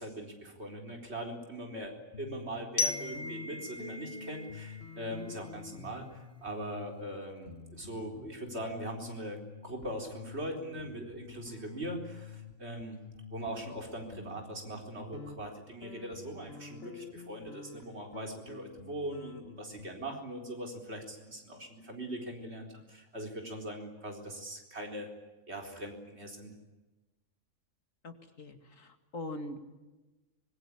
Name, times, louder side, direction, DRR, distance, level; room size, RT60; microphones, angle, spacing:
voice 1, 0.0-13.0 13.3-25.1 25.5-26.5, right 1 dB, 50° right, 2 dB, 4.6 m, -41 dB
sound 1, 1.7-1.9 2.1-12.5 12.8-19.9, left 5 dB, 50° left, 1.8 m, -48 dB
Glockenspiel, 2.8-5.6, left 3 dB, 30° left, 1.2 m, -37 dB
voice 2, 28.0-29.6, left 1 dB, 75° left, 7 dB, 2.7 m, -42 dB
25.0 x 22.0 x 10.0 m, 1.1 s
omnidirectional pair, 1.4 m